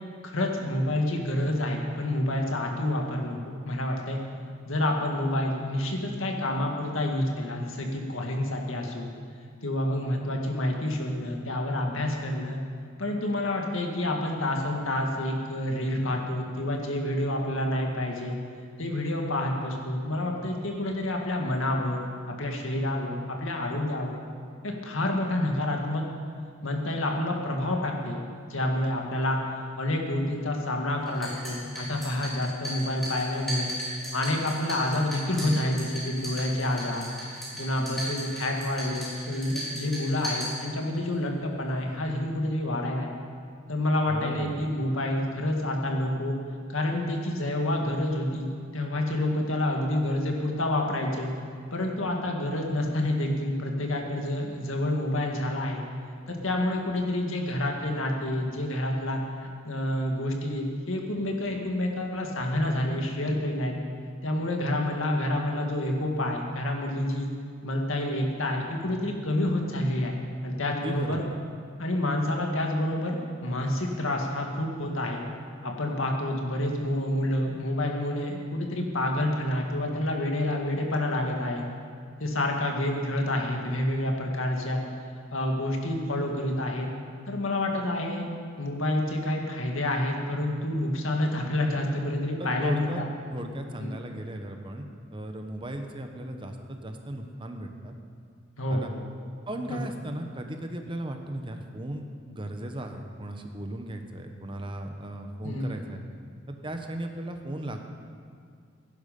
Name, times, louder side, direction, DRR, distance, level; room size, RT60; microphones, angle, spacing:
voice 1, 0.2-3.4 3.7-4.2 4.7-9.1 9.6-12.6 13.0-18.4 18.8-24.2 24.6-26.0 26.6-28.2 28.5-29.4 29.8-33.7 34.1-37.1 37.6-43.1 43.7-46.4 46.7-51.3 51.7-55.8 56.3-63.8 64.2-67.3 67.6-70.2 70.4-71.2 71.8-75.2 75.6-81.6 82.2-84.8 85.3-86.9 87.3-88.3 88.6-93.1 93.8-93.9 98.6-99.0 99.7-99.8 105.4-105.8, left 1 dB, 80° left, 1 dB, 2.0 m, -28 dB
sound 1, 31.1-41.0, equal, ahead, 4.0 m, -37 dB
voice 2, 44.1-44.6 70.7-71.2 92.4-93.0 93.3-97.9 98.7-98.9 99.5-106.0 106.5-107.8, right 1 dB, 25° right, 5 dB, 1.0 m, -36 dB
18.0 x 10.5 x 5.3 m, 2.2 s
head